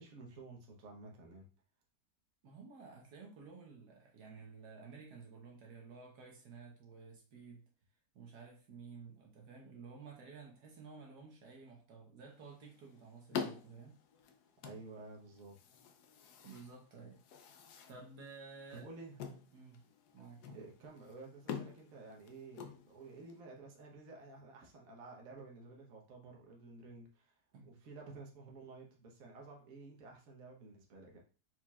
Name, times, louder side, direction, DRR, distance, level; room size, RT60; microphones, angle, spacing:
voice 1, 0.0-1.5 14.6-15.6 18.7-19.2 20.5-31.2, right 3 dB, 60° right, 0 dB, 1.3 m, -52 dB
voice 2, 2.4-7.6 8.1-14.0 16.4-17.2 17.9-18.9 19.5-19.8 20.1-20.6 27.5-27.8, right 4 dB, 75° right, 0 dB, 1.5 m, -53 dB
sound 1, 12.3-23.4, left 6 dB, 75° left, 1.1 m, -48 dB
4.5 x 4.5 x 2.3 m, 0.36 s
omnidirectional pair, 1.8 m